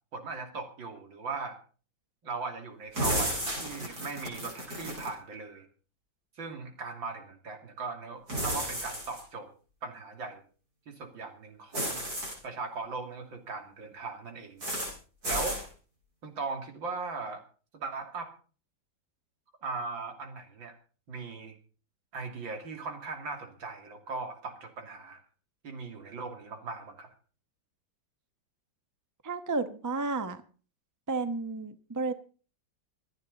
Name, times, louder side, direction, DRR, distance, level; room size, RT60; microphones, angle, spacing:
voice 1, 0.1-1.6 2.2-5.7 6.4-9.5 9.8-10.4 10.9-12.1 12.4-14.6 15.2-15.6 16.2-17.4 17.7-18.3 19.6-20.8 21.1-21.5 22.1-25.2 25.6-27.1, right 4 dB, 80° right, 5 dB, 3.4 m, -39 dB
sound 1, 2.9-5.1 8.3-9.2 11.7-12.3 14.6-14.9 15.2-15.6, right 1 dB, 50° right, 6.9 m, -32 dB
voice 2, 29.2-30.4 31.1-32.1, right 3 dB, 15° right, 11 dB, 0.7 m, -32 dB
26.0 x 9.6 x 4.0 m, 0.39 s
omnidirectional pair, 2.1 m